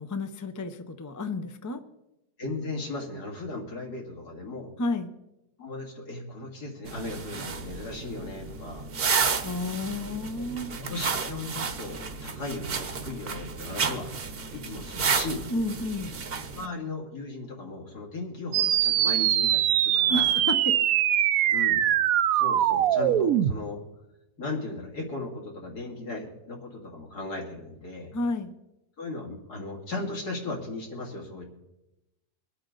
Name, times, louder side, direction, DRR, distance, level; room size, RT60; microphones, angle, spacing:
voice 1, 0.0-1.8 4.8-5.1 9.4-10.8 15.5-16.1 20.1-20.8 28.1-28.5, left 2 dB, 25° left, 8 dB, 0.4 m, -31 dB
voice 2, 2.4-4.7 5.6-8.9 10.8-14.1 14.5-15.5 16.5-20.3 21.5-21.9 22.3-23.8 24.4-28.1 29.0-31.4, left 2 dB, 75° left, -1 dB, 3.3 m, -36 dB
sound 1, 6.9-16.7, right 5 dB, 45° right, 1.0 m, -32 dB
sound 2, 18.5-23.5, right 11 dB, 70° right, 0.9 m, -22 dB
24.0 x 8.6 x 3.9 m, 0.93 s
omnidirectional pair, 1.7 m